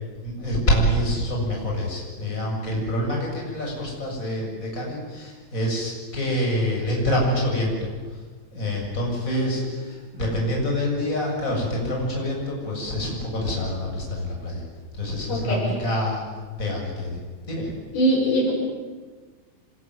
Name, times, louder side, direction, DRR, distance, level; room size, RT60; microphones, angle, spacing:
voice 1, 0.2-7.9 8.5-14.6 14.9-16.2 16.6-17.2 17.5-17.7, equal, 20° left, -2 dB, 7.6 m, -26 dB
voice 2, 15.3-15.6 17.9-18.5, right 1 dB, 85° left, -1 dB, 8.7 m, -22 dB
26.0 x 21.5 x 9.5 m, 1.4 s
omnidirectional pair, 4.2 m